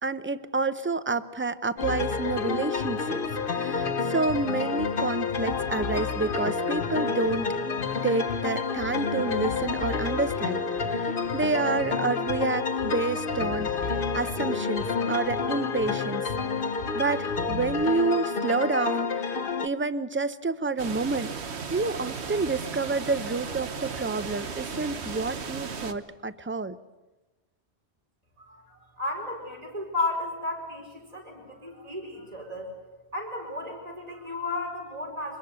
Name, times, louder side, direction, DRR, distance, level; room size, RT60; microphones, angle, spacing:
voice 1, 0.0-3.2 3.5-7.5 8.0-13.8 14.1-16.3 16.9-19.3 19.6-21.3 21.7-26.8, right 3 dB, 15° right, 14 dB, 0.6 m, -29 dB
sound 1, 1.8-17.8, left 3 dB, 75° left, 1.4 m, -37 dB
sound 2, 1.8-19.7, left 5 dB, 55° left, 1.1 m, -29 dB
sound 3, 20.8-25.9, right 5 dB, 85° right, 1.5 m, -36 dB
voice 2, 28.4-32.7 33.1-35.4, left 2 dB, 35° right, 1 dB, 4.8 m, -34 dB
24.5 x 21.0 x 8.1 m, 1.1 s
omnidirectional pair, 1.1 m